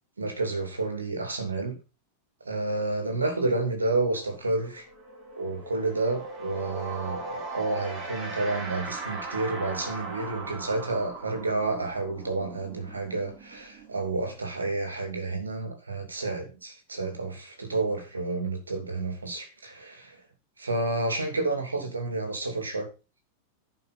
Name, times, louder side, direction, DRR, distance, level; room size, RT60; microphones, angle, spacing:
voice 1, 0.2-1.8 2.4-4.9 5.4-20.2 20.6-22.9, right 2 dB, 75° right, 2.8 m, -30 dB
sound 1, 3.7-3.9 4.2-14.8, right 3 dB, 30° right, 6.3 m, -39 dB
11.0 x 5.8 x 5.5 m
figure-of-eight pair, 90°, 0 cm